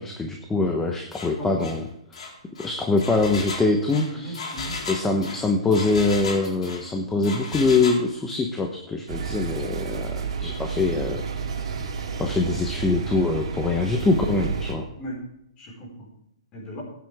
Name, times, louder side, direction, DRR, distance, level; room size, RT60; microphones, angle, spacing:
voice 1, 0.0-1.9 2.6-4.4 4.9-11.2 12.2-14.9, left 3 dB, 10° left, 3 dB, 1.0 m, -23 dB
Engine, 1.1-1.3 1.6-1.8 2.1-6.9 7.2-8.0, left 3 dB, 75° left, 4.3 m, -34 dB
voice 2, 4.1-4.8 15.0-15.2 15.6-16.1 16.5-16.8, equal, 25° left, -2 dB, 5.0 m, -37 dB
sound 1, 9.1-14.8, right 5 dB, 65° right, 2.3 m, -31 dB
15.5 x 9.3 x 3.6 m, 0.78 s
hypercardioid pair, 150°, 3 cm